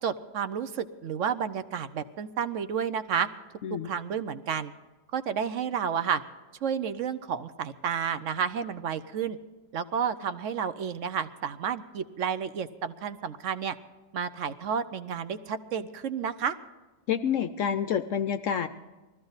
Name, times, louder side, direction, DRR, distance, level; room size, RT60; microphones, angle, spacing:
voice 1, 0.0-3.3 3.7-4.7 5.1-6.2 6.6-9.4 9.7-13.8 14.1-16.5, right 7 dB, 60° right, 12 dB, 0.9 m, -31 dB
voice 2, 17.1-18.7, left 8 dB, 65° left, 10 dB, 0.8 m, -28 dB
20.5 x 14.5 x 4.0 m, 1.2 s
omnidirectional pair, 1.8 m